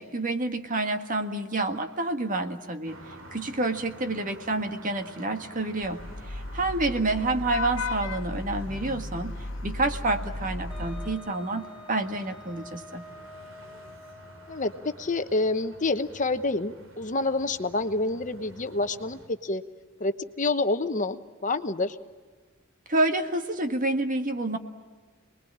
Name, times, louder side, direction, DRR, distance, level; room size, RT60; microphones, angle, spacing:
voice 1, 0.0-3.0 3.3-6.0 6.3-9.4 9.6-13.0 22.9-24.6, right 2 dB, 45° right, 6 dB, 1.8 m, -28 dB
sound 1, 2.9-19.3, right 1 dB, 90° right, 3.2 m, -50 dB
Vehicle horn car horn honking / Traffic noise roadway noise, 5.8-11.1, left 2 dB, 80° left, 1.3 m, -35 dB
Wind instrument woodwind instrument, 10.7-15.1, left 1 dB, 5° right, 2.1 m, -47 dB
voice 2, 14.5-19.6 20.0-21.2 21.4-22.0, left 2 dB, 40° left, 9 dB, 1.0 m, -28 dB
28.0 x 21.0 x 8.8 m, 1.4 s
head